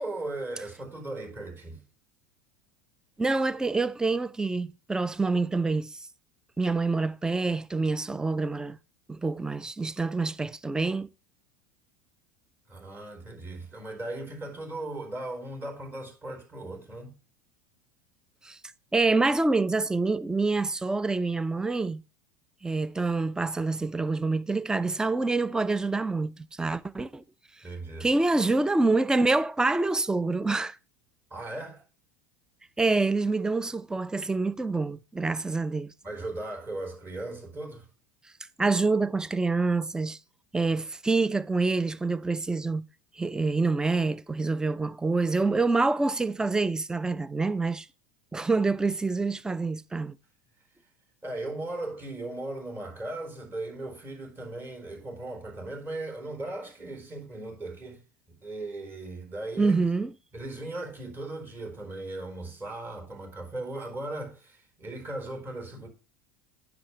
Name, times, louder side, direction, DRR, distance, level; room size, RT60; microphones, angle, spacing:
voice 1, 0.0-1.8 12.7-17.1 27.6-28.1 31.3-31.8 36.0-37.9 51.2-58.0 58.3-59.9 60.3-65.9, right 2 dB, 25° right, 4.3 m, -37 dB
voice 2, 3.2-6.0 6.6-8.8 9.1-11.1 18.4-18.6 18.9-22.0 22.6-27.2 28.0-30.8 32.8-35.9 38.6-40.2 40.5-42.8 43.2-47.9 48.3-50.2 59.6-60.1, right 3 dB, 10° right, 0.5 m, -26 dB
9.7 x 6.9 x 3.1 m
hypercardioid pair, 85°, 9 cm